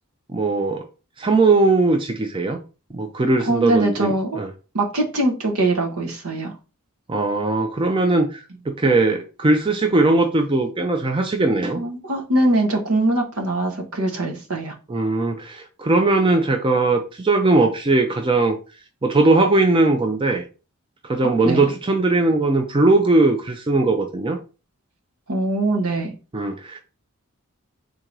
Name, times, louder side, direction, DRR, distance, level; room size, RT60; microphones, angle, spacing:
voice 1, 0.3-0.8 1.2-2.6 2.9-4.5 7.1-11.8 14.9-18.6 19.0-20.4 21.1-24.4 26.3-26.8, right 2 dB, 25° right, 0.4 m, -19 dB
voice 2, 3.4-4.4 4.7-6.5 8.8-8.9 11.7-14.7 21.2-21.7 25.3-26.1, right 1 dB, 85° right, 1.0 m, -22 dB
3.7 x 2.6 x 4.5 m
head